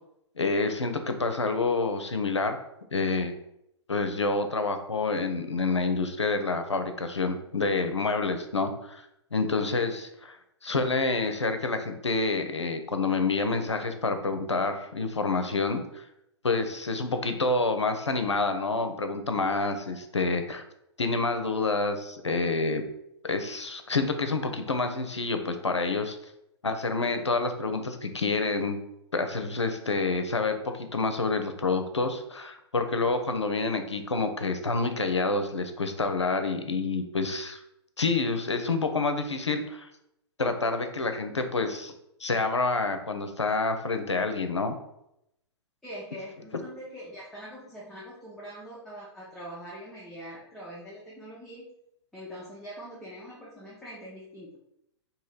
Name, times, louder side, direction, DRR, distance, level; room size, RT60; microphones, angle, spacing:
voice 1, 0.4-2.6 2.9-3.4 3.9-9.1 9.3-10.4 10.6-16.0 16.4-20.6 21.0-22.8 23.2-26.2 26.6-28.8 29.1-37.6 38.0-39.9 40.4-41.9 42.2-44.8, left 3 dB, 85° left, 7 dB, 0.5 m, -28 dB
voice 2, 45.8-51.7 52.1-54.6, equal, ahead, -7 dB, 0.6 m, -43 dB
3.0 x 2.7 x 3.9 m, 0.81 s
figure-of-eight pair, 110°, 15 cm